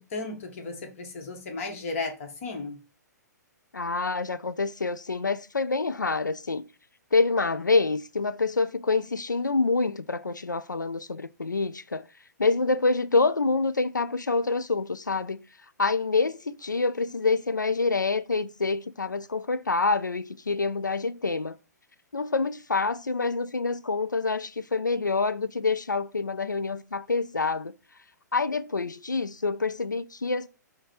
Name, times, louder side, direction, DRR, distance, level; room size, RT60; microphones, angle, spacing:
voice 1, 0.0-2.8, left 3 dB, 50° left, 1.2 m, -35 dB
voice 2, 3.7-6.7 7.1-12.1 12.4-15.4 15.8-21.6 22.1-27.7 28.3-30.5, left 3 dB, 85° left, 0.4 m, -26 dB
4.6 x 2.2 x 4.3 m
figure-of-eight pair, 120°, 10 cm